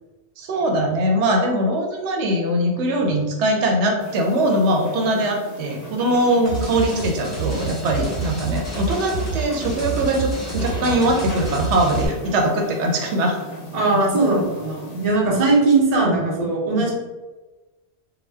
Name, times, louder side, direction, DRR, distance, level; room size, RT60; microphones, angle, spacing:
voice 1, 0.4-13.4, right 1 dB, 90° right, 1 dB, 0.9 m, -21 dB
sound 1, 4.0-15.1, equal, 45° left, 0.6 m, -37 dB
sound 2, 6.5-12.1, right 4 dB, 15° left, 1.1 m, -28 dB
voice 2, 13.7-16.9, right 3 dB, 45° right, -4 dB, 0.8 m, -19 dB
2.7 x 2.1 x 3.3 m, 1.2 s
omnidirectional pair, 1.1 m